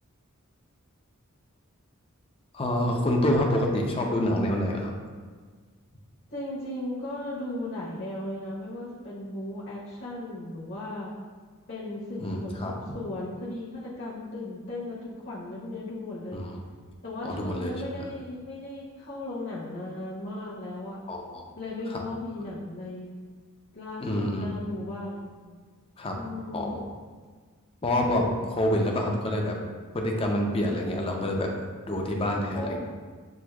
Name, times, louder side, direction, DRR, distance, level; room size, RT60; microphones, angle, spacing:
voice 1, 2.5-4.9 12.2-12.7 16.3-16.6 17.2-18.1 21.1-21.4 21.9-22.0 24.0-24.5 26.0-26.2 26.5-26.8 27.8-29.6 29.9-31.5 31.9-32.8, left 1 dB, 25° left, 1 dB, 0.5 m, -27 dB
voice 2, 6.3-11.1 11.7-16.5 17.0-21.0 21.6-23.1 23.7-25.3 26.1-26.8 32.5-32.8, left 1 dB, 50° left, -6 dB, 1.0 m, -36 dB
7.5 x 2.7 x 2.3 m, 1.5 s
head